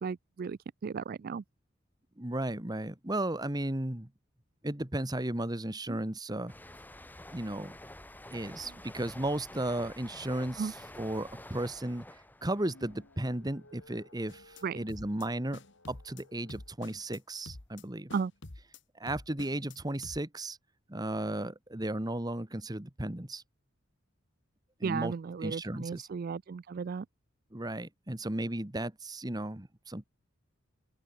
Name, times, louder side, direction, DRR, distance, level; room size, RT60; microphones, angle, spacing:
voice 1, 0.0-1.4 5.9-6.0 10.6-10.7 14.6-14.8 18.1-18.3 24.8-27.0, right 5 dB, 45° right, 0.3 m, -35 dB
voice 2, 2.2-4.1 4.6-6.5 7.3-7.7 8.3-15.6 15.9-18.1 18.9-20.6 20.9-23.4 24.8-25.1 25.4-26.1 27.5-30.0, right 1 dB, 20° right, 1.5 m, -35 dB
sound 1, 6.5-13.9 14.2-14.6, left 1 dB, 10° left, 3.6 m, -49 dB
sound 2, 12.3-16.7, left 2 dB, 80° left, 7.9 m, -60 dB
sound 3, 14.3-14.6 14.9-15.3 15.5-16.2 16.5-17.2 17.4-17.8 18.1-18.8 19.1-19.8 20.0-20.2, left 2 dB, 60° left, 1.8 m, -47 dB
open air
head